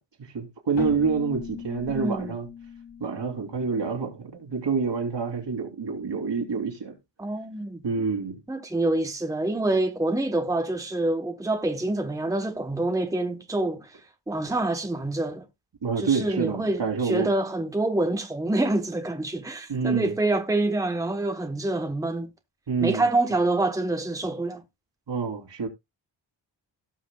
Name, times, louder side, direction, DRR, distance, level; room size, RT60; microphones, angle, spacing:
voice 1, 0.3-2.5 3.0-6.9 7.8-8.4 15.8-17.3 19.7-20.1 22.7-23.0 25.1-25.7, right 5 dB, 70° right, 3.0 m, -27 dB
Keyboard (musical), 0.8-4.4, left 8 dB, 80° left, 5.6 m, -39 dB
voice 2, 1.9-2.3 7.2-7.8 8.5-14.0 14.3-15.5 16.0-22.3 22.8-24.6, right 2 dB, 10° right, 1.0 m, -26 dB
17.5 x 5.9 x 2.3 m
wide cardioid pair, 115°, 43 cm